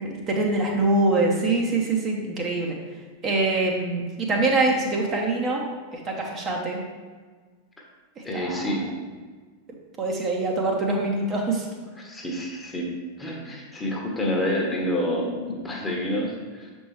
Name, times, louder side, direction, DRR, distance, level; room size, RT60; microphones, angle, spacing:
voice 1, 0.0-2.8 3.2-5.6 5.9-6.8 8.3-8.6 10.0-11.7, right 2 dB, 30° right, 0 dB, 0.9 m, -24 dB
voice 2, 8.2-8.8 12.0-12.9 13.2-16.7, equal, 15° left, -1 dB, 1.2 m, -28 dB
7.1 x 4.4 x 3.2 m, 1.5 s
figure-of-eight pair, 90°, 0 cm